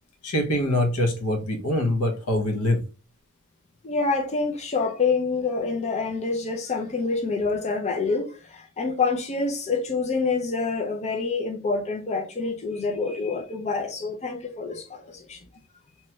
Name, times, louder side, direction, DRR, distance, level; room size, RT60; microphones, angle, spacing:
voice 1, 0.2-2.8, left 1 dB, 75° left, 0.8 m, -24 dB
voice 2, 3.8-15.4, left 4 dB, 30° left, 0.4 m, -27 dB
2.9 x 2.3 x 3.0 m
head